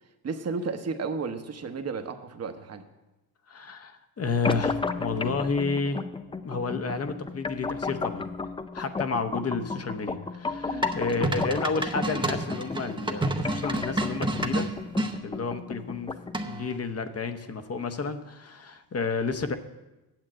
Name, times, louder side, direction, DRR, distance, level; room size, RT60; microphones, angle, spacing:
voice 1, 0.2-2.9 10.7-10.9, right 4 dB, 40° right, 7 dB, 1.0 m, -33 dB
voice 2, 3.5-6.0 6.4-8.3 8.7-14.7 15.2-16.1 16.5-19.6, left 4 dB, 40° left, 9 dB, 0.9 m, -31 dB
sound 1, 4.4-16.4, left 4 dB, 15° left, 0.4 m, -34 dB
sound 2, 10.8-15.1 16.3-16.8, right 2 dB, 10° right, 0.8 m, -29 dB
9.0 x 7.3 x 7.5 m, 1.0 s
cardioid pair, 100°, 39 cm